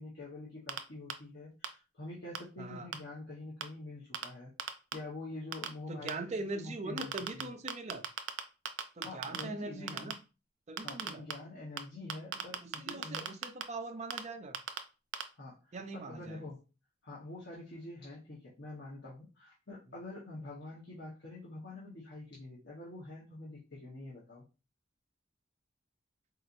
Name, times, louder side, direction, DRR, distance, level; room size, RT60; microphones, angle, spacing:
voice 1, 0.0-4.5 4.9-7.5 9.0-10.1 10.8-13.3 15.4-16.6 17.0-24.4, left 2 dB, 60° left, 1.1 m, -46 dB
sound 1, 0.7-0.8 1.1-1.2 1.6-1.7 2.4-2.5 2.9-3.0 3.6-3.7 4.1-4.3 4.6-4.9 5.5-5.7 6.1-6.2 7.0-7.4 7.7-8.4 8.7-9.4 9.9-10.1 10.8-11.3 11.8-11.9 12.1-13.6 14.1-14.2 14.5-14.8 15.1-15.2, right 9 dB, 90° right, 0.5 m, -35 dB
voice 2, 2.6-2.9 5.9-8.0 9.0-10.2 10.7-11.2 12.6-14.6 15.7-16.4, right 2 dB, 40° right, 0.5 m, -41 dB
4.1 x 2.9 x 2.5 m
head